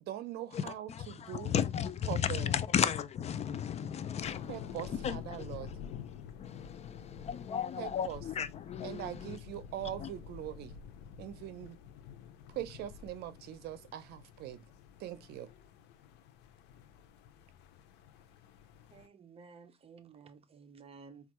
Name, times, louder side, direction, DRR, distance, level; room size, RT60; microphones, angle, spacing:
voice 1, 0.0-1.5 2.1-2.6 4.5-5.7 7.8-8.2 8.8-10.8 11.2-11.8 12.5-14.6 15.0-15.5, right 12 dB, 75° right, 0.6 m, -42 dB
voice 2, 0.5-5.7 6.4-9.4 10.0-10.1, left 8 dB, 40° left, 0.4 m, -35 dB
sound 1, 4.2-19.1, left 8 dB, 90° left, 0.5 m, -49 dB
voice 3, 18.9-21.3, right 5 dB, 35° right, 0.6 m, -54 dB
4.4 x 2.4 x 3.0 m
cardioid pair, 110°, 17 cm